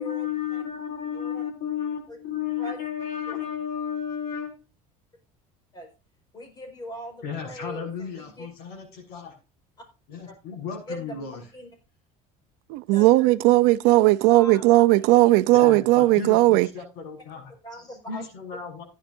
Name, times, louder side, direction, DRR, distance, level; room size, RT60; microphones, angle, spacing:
voice 1, 0.0-4.5 7.2-9.3 10.1-11.5 15.5-17.5 18.1-18.8, left 8 dB, 70° left, 6.0 m, -33 dB
voice 2, 6.3-8.5 10.3-10.4 10.9-11.7 12.9-13.1 14.3-14.6 15.9-16.1 17.3-18.3, equal, 25° left, 5.2 m, -40 dB
voice 3, 12.7-16.7, right 18 dB, 75° right, 0.7 m, -17 dB
15.5 x 10.0 x 2.7 m
cardioid pair, 140°, 17 cm